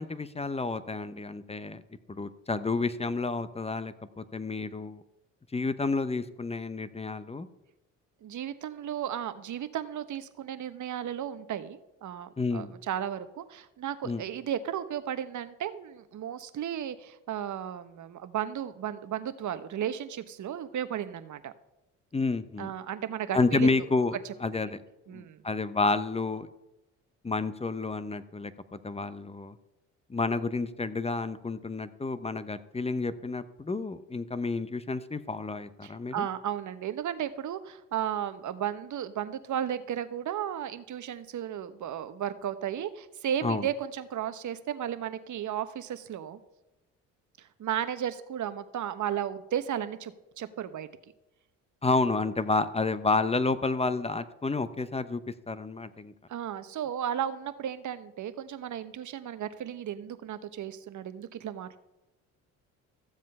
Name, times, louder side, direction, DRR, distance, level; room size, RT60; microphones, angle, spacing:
voice 1, 0.0-1.8 2.1-5.0 5.5-7.5 12.4-12.7 14.0-14.2 22.1-22.7 23.3-24.8 25.1-26.5 27.2-29.6 30.1-36.3 43.4-43.7 51.8-55.2 55.5-56.1, left 3 dB, 15° left, 13 dB, 0.9 m, -30 dB
voice 2, 8.2-21.5 22.6-23.7 25.1-25.4 35.8-46.4 47.4-50.9 56.3-61.8, right 10 dB, 50° right, 12 dB, 1.0 m, -34 dB
14.5 x 7.4 x 5.4 m, 0.95 s
hypercardioid pair, 60°, 38 cm